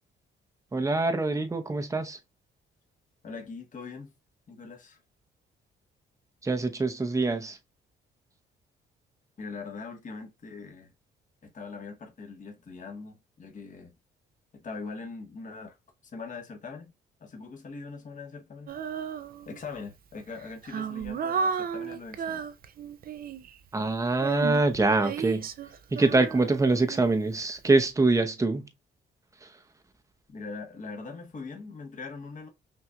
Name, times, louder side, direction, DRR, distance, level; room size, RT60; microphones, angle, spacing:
voice 1, 0.7-2.2 6.4-7.6 23.7-25.5 25.9-28.7 29.4-29.5, right 3 dB, 15° right, 0.7 m, -24 dB
voice 2, 3.2-4.1 4.5-5.0 9.4-10.9 11.4-13.9 14.5-15.8 16.1-16.9 17.2-18.7 19.5-22.5 30.3-32.5, left 4 dB, 40° left, 1.2 m, -41 dB
Female singing, 18.7-19.7 20.3-23.6 24.2-27.3, right 6 dB, 45° right, 0.5 m, -34 dB
5.8 x 2.6 x 2.2 m
cardioid pair, 90°, 20 cm